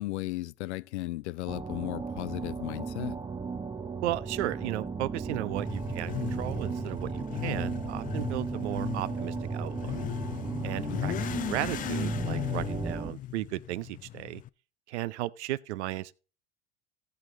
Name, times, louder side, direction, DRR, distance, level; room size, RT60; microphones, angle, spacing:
voice 1, 0.0-3.2 10.9-11.3, left 18 dB, 70° left, 0.6 m, -35 dB
sound 1, 1.5-13.1, right 5 dB, 10° right, 0.7 m, -35 dB
voice 2, 4.0-10.0 10.6-11.1 11.5-14.4 14.9-16.1, right 15 dB, 70° right, 0.7 m, -35 dB
Motorcycle / Accelerating revving vroom, 5.6-14.5, left 13 dB, 25° left, 0.4 m, -37 dB
16.0 x 6.1 x 3.8 m
hypercardioid pair, 80°, 35 cm